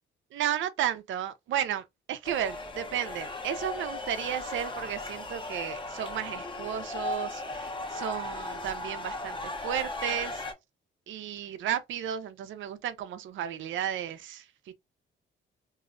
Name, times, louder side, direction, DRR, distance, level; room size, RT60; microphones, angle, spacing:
voice 1, 0.3-10.4 11.1-14.7, right 10 dB, 75° right, 0.6 m, -33 dB
sound 1, 2.2-10.5, left 2 dB, 25° left, 0.8 m, -37 dB
3.1 x 2.7 x 2.5 m
cardioid pair, 90°, 20 cm